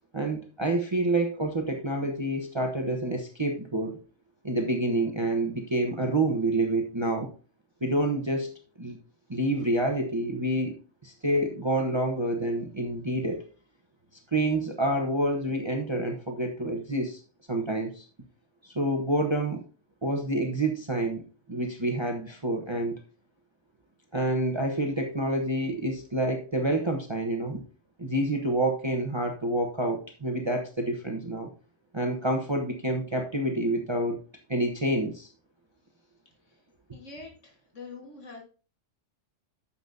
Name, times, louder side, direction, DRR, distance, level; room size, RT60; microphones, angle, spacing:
voice 1, 0.1-4.0 4.4-7.3 7.8-8.5 8.8-9.0 9.3-10.8 11.0-13.4 14.3-17.2 17.5-18.0 18.6-19.6 20.0-21.2 21.5-23.0 24.1-27.6 28.0-31.5 31.9-34.2 34.5-35.3, right 1 dB, 25° right, 2 dB, 1.1 m, -28 dB
voice 2, 36.9-38.4, left 3 dB, 80° left, 1 dB, 2.2 m, -45 dB
9.9 x 7.4 x 2.7 m, 0.36 s
omnidirectional pair, 1.2 m